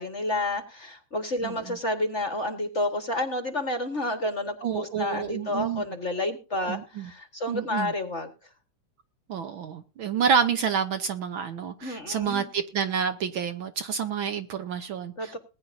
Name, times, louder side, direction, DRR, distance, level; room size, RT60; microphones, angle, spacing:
voice 1, 0.0-8.3 11.8-12.5 15.2-15.4, left 1 dB, 40° left, 1.0 m, -30 dB
voice 2, 1.4-1.8 4.6-5.8 6.7-7.1 7.5-7.9 9.3-15.4, right 7 dB, 75° right, 1.1 m, -29 dB
20.5 x 10.0 x 2.6 m
omnidirectional pair, 3.4 m